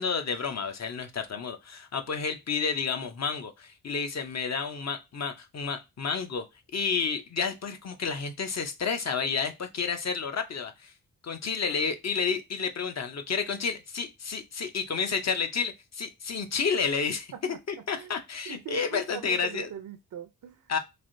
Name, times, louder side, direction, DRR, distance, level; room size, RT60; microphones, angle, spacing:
voice 1, 0.0-6.4 6.7-10.9 11.2-19.7 20.7-20.8, left 5 dB, 45° left, 7 dB, 0.6 m, -30 dB
voice 2, 18.5-20.7, right 9 dB, 60° right, 8 dB, 0.5 m, -42 dB
3.3 x 2.5 x 2.6 m, 0.23 s
cardioid pair, 80°, 37 cm